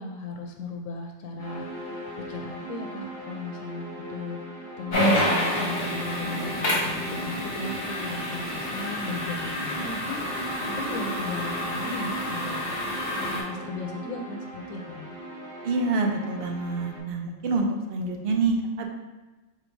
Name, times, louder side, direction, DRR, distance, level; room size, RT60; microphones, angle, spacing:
voice 1, 0.0-4.4 4.8-10.2 10.8-12.7 13.2-15.1, left 3 dB, 85° left, 2 dB, 1.0 m, -36 dB
sound 1, 1.4-17.0, right 1 dB, 80° right, 1.8 m, -39 dB
sound 2, 4.9-13.4, left 1 dB, 50° left, 1.3 m, -28 dB
voice 2, 15.6-18.9, right 3 dB, 60° right, 2 dB, 0.7 m, -27 dB
4.3 x 2.6 x 4.5 m, 1.2 s
omnidirectional pair, 1.3 m